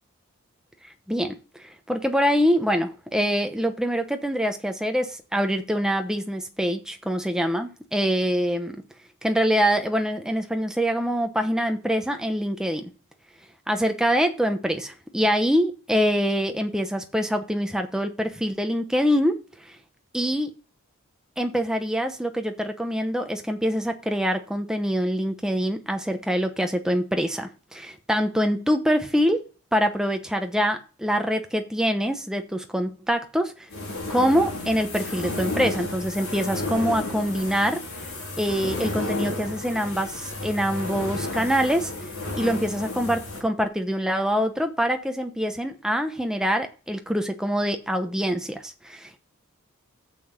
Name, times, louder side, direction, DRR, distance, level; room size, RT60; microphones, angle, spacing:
voice 1, 1.9-8.8 9.2-12.9 13.7-19.4 20.1-20.5 21.4-29.4 29.7-33.5 34.1-37.8 38.4-41.9 42.4-49.2, equal, 5° right, 0.9 m, -24 dB
sound 1, 33.7-43.4, left 2 dB, 80° left, 3.9 m, -32 dB
7.0 x 5.9 x 5.8 m
head